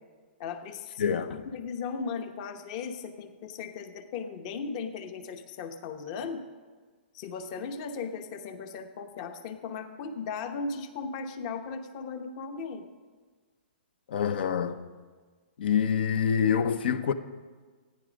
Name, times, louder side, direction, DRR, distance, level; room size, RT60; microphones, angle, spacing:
voice 1, 0.4-1.2 1.4-6.4 7.1-12.8, left 5 dB, 35° left, 1.0 m, -37 dB
voice 2, 1.0-1.4 14.1-14.9 15.6-17.1, left 7 dB, 65° left, 0.8 m, -26 dB
14.0 x 9.8 x 5.2 m
hypercardioid pair, 150°, 6 cm